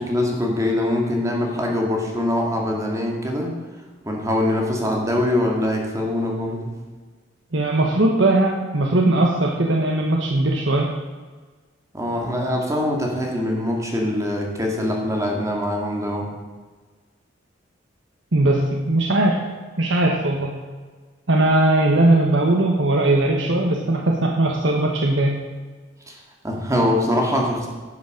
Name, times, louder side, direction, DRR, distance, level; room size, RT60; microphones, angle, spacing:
voice 1, 0.0-3.5 4.1-6.7 11.9-16.3 26.1-26.2 26.4-27.7, left 1 dB, 15° right, 0 dB, 2.0 m, -23 dB
voice 2, 7.5-10.9 18.3-19.4 19.8-20.5 21.3-25.4, right 2 dB, 70° right, 0 dB, 1.3 m, -19 dB
11.0 x 7.1 x 6.5 m, 1.4 s
head